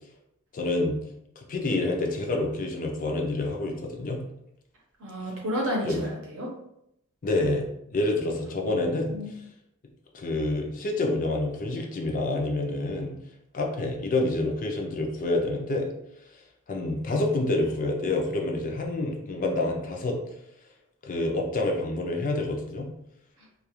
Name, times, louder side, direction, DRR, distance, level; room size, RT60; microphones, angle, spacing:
voice 1, 0.5-1.0 1.4-4.2 5.8-6.0 7.2-9.1 10.1-13.1 13.5-15.9 16.7-20.2 21.0-22.9, left 2 dB, 35° left, 1 dB, 0.4 m, -27 dB
voice 2, 5.0-6.5 8.6-9.3, equal, 60° right, -1 dB, 0.8 m, -32 dB
2.3 x 2.3 x 2.9 m, 0.79 s
head